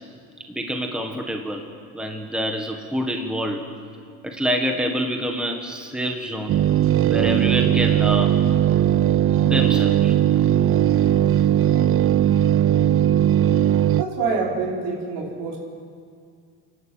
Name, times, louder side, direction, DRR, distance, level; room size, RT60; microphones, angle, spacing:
voice 1, 0.5-1.6 1.9-3.6 4.2-6.6 7.1-8.4 9.4-10.1, equal, ahead, 3 dB, 1.6 m, -26 dB
sound 1, 6.5-14.0, right 11 dB, 35° right, 0.5 m, -18 dB
voice 2, 14.0-15.6, right 4 dB, 75° right, -2 dB, 5.7 m, -26 dB
29.0 x 12.5 x 9.0 m, 2.2 s
cardioid pair, 145°, 40 cm